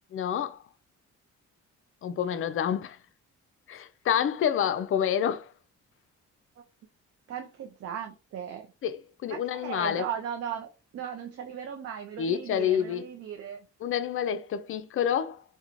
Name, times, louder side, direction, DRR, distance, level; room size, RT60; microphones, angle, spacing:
voice 1, 0.1-0.6 2.0-3.0 3.7-5.5 8.8-10.0 12.2-13.0 13.8-15.4, left 9 dB, 45° left, 0.4 m, -28 dB
voice 2, 7.3-8.7 9.3-13.7, right 8 dB, 55° right, 0.5 m, -37 dB
2.9 x 2.2 x 2.5 m
cardioid pair, 90°, 30 cm